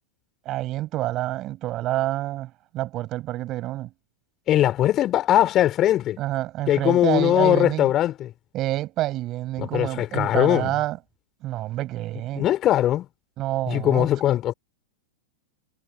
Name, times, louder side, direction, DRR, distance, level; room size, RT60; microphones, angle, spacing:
voice 1, 0.5-3.9 6.2-7.9 8.5-11.0 11.4-12.5 13.4-14.1, right 15 dB, 35° right, 7.0 m, -28 dB
voice 2, 4.5-6.2 6.7-8.3 9.6-10.7 12.3-13.1 13.7-14.5, left 12 dB, 30° left, 4.8 m, -20 dB
figure-of-eight pair, 90°, 0 cm